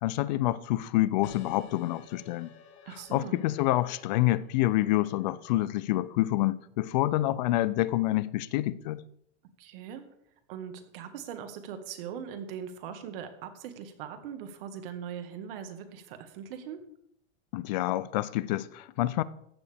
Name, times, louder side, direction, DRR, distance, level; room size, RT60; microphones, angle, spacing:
voice 1, 0.0-2.5 3.1-9.0 17.5-19.2, left 16 dB, 40° left, 0.4 m, -27 dB
sound 1, 1.2-6.4, left 6 dB, 70° left, 2.9 m, -54 dB
voice 2, 2.8-3.4 9.6-10.1 10.5-16.8, right 8 dB, 50° right, 1.7 m, -40 dB
15.0 x 9.4 x 3.5 m
supercardioid pair, 170°, 35 cm